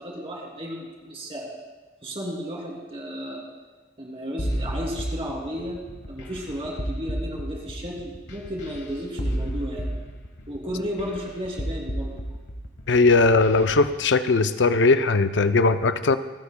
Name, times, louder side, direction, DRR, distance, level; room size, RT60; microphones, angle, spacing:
voice 1, 0.0-1.5 2.0-3.4 4.0-5.8 6.1-9.9 10.5-12.1, equal, 30° right, -2 dB, 2.9 m, -33 dB
sound 1, 4.4-13.9, equal, 65° left, 1.4 m, -32 dB
voice 2, 12.9-16.2, left 3 dB, 80° left, 11 dB, 0.5 m, -19 dB
27.5 x 9.7 x 2.2 m, 1.3 s
head